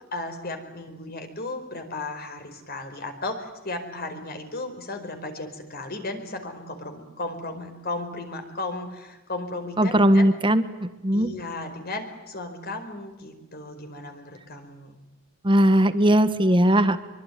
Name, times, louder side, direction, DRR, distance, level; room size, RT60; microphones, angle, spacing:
voice 1, 0.1-10.3 11.1-15.0, left 2 dB, 50° left, 7 dB, 4.7 m, -35 dB
voice 2, 9.8-11.3 15.4-17.0, right 1 dB, 25° right, 11 dB, 1.6 m, -19 dB
25.5 x 24.0 x 9.4 m, 1.1 s
head